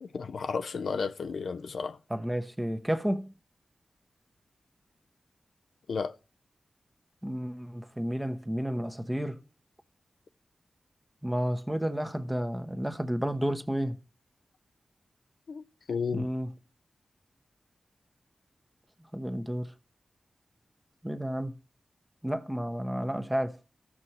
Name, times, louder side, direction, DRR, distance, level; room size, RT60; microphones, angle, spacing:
voice 1, 0.0-2.0 5.9-6.1 15.5-15.6 15.9-16.3, left 5 dB, 90° left, 0.5 m, -32 dB
voice 2, 2.1-3.3 7.2-9.4 11.2-13.9 16.1-16.5 19.1-19.7 21.0-21.5 22.2-23.5, equal, 10° right, 1.0 m, -31 dB
14.0 x 6.3 x 4.3 m
wide cardioid pair, 70°, 0 cm